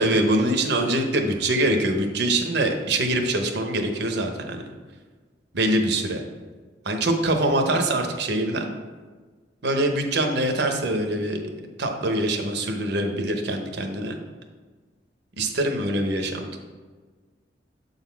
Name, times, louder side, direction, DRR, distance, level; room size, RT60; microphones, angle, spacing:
voice 1, 0.0-4.7 5.5-6.2 6.8-8.7 9.6-11.4 11.8-14.2 15.4-16.6, right 1 dB, 65° right, 4 dB, 0.8 m, -24 dB
7.7 x 4.1 x 4.5 m, 1.4 s
head